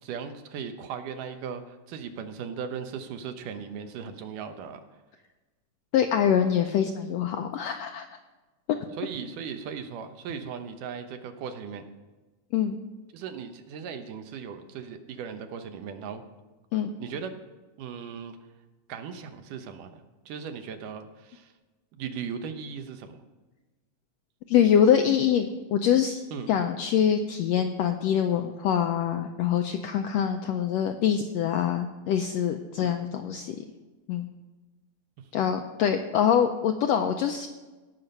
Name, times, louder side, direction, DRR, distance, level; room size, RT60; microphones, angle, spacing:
voice 1, 0.0-4.8 9.0-11.8 13.1-16.2 17.0-17.3 17.8-18.4 18.9-21.5 21.9-23.2 26.3-26.5 32.8-32.9, right 7 dB, 85° right, 7 dB, 2.5 m, -37 dB
voice 2, 5.9-8.0 12.5-12.8 16.7-16.9 24.5-26.2 26.5-33.6 34.1-34.3 35.3-37.5, left 8 dB, 85° left, 6 dB, 1.5 m, -24 dB
17.5 x 5.9 x 5.4 m, 1.2 s
omnidirectional pair, 3.6 m